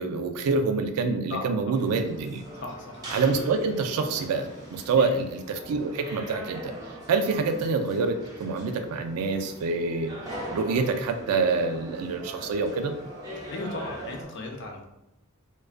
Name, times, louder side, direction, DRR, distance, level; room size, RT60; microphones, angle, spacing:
voice 1, 0.0-2.4 3.1-6.7 7.1-10.1 10.5-12.9, right 4 dB, 85° right, 7 dB, 0.3 m, -26 dB
voice 2, 1.3-1.7 2.6-3.0 5.0-5.2 13.4-14.8, left 3 dB, 55° left, 1 dB, 0.4 m, -36 dB
sound 1, 1.7-14.2, right 1 dB, 15° right, 0.5 m, -41 dB
2.3 x 2.2 x 2.4 m, 0.89 s
head